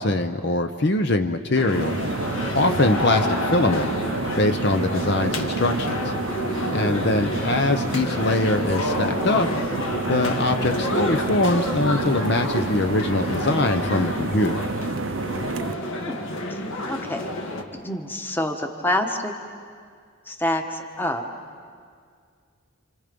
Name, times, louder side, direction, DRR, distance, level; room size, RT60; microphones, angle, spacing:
voice 1, 0.0-1.9 2.5-3.9 4.4-6.0 6.7-9.5 10.1-14.5, left 2 dB, 50° left, 7 dB, 0.8 m, -22 dB
sound 1, 1.5-17.6, left 1 dB, 70° left, 2.0 m, -29 dB
sound 2, 1.7-15.7, right 3 dB, 70° right, 0.6 m, -30 dB
voice 2, 16.5-17.3 17.8-19.3 20.3-21.2, left 1 dB, 10° left, 4 dB, 1.2 m, -27 dB
30.0 x 26.0 x 5.3 m, 2.1 s
head